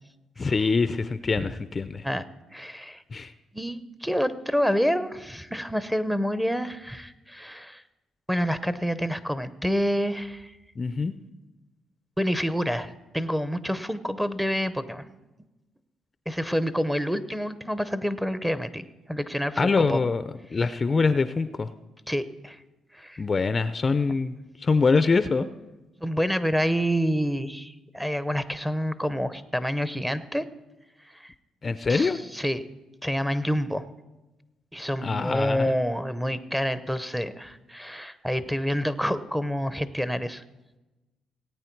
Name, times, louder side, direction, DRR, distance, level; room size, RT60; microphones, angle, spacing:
voice 1, 0.4-2.1 3.1-3.3 10.8-11.1 19.6-20.2 20.5-21.7 23.2-25.5 31.6-32.2 35.0-35.8, left 4 dB, 35° left, 13 dB, 0.5 m, -24 dB
voice 2, 2.5-3.0 3.5-7.8 8.3-10.6 12.2-15.0 16.3-20.0 22.1-22.6 22.9-23.2 26.0-30.5 31.0-31.3 31.9-32.6 33.0-33.8 34.7-40.4, equal, 5° right, 12 dB, 0.7 m, -28 dB
18.0 x 8.8 x 4.6 m, 1.1 s
cardioid pair, 90°, 0 cm